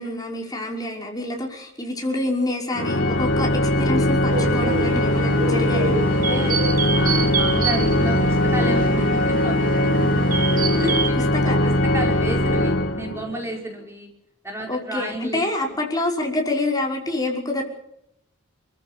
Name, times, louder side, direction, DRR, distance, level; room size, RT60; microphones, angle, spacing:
voice 1, 0.0-5.9 11.4-11.8 14.7-17.6, left 2 dB, 20° left, 0 dB, 5.7 m, -27 dB
Organ, 2.7-13.5, left 1 dB, 75° left, 2.7 m, -21 dB
sound 1, 4.3-11.1, right 4 dB, 45° right, 1.3 m, -27 dB
voice 2, 6.0-6.6 7.0-10.1 10.8-14.1 14.4-15.8, right 1 dB, 15° right, 1 dB, 4.7 m, -32 dB
29.0 x 14.5 x 7.2 m, 0.77 s
head